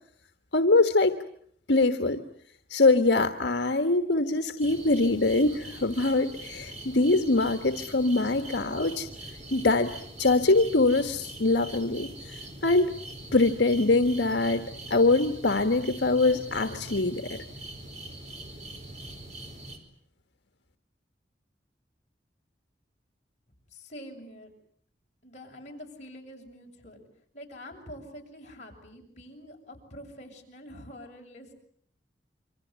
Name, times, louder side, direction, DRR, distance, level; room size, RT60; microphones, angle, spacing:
voice 1, 0.5-1.1 1.7-2.2 2.7-9.1 9.5-9.9 10.2-12.9 13.3-14.6 14.9-17.4, left 2 dB, 85° left, 7 dB, 1.5 m, -23 dB
sound 1, 4.6-19.8, right 2 dB, 40° right, 4.7 m, -43 dB
voice 2, 23.7-24.5 25.2-27.0 27.3-31.5, equal, 40° left, 0 dB, 7.0 m, -46 dB
28.0 x 25.0 x 8.2 m, 0.64 s
head